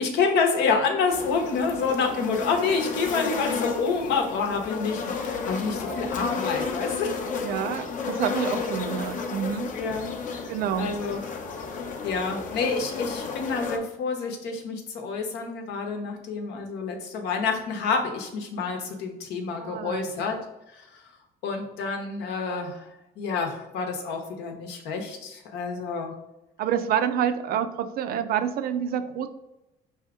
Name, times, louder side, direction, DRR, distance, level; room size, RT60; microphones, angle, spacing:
voice 1, 0.0-7.2 9.7-11.2 12.0-20.4 20.7-21.0 21.4-22.9 23.2-26.1, left 4 dB, 85° left, 4 dB, 0.9 m, -28 dB
sound 1, 1.1-13.8, left 5 dB, 50° left, 0.6 m, -32 dB
voice 2, 7.4-9.7 10.5-10.9 19.6-20.0 25.7-25.8 26.6-29.3, right 8 dB, 60° right, 10 dB, 0.4 m, -28 dB
4.8 x 2.8 x 3.6 m, 0.93 s
cardioid pair, 110°, 17 cm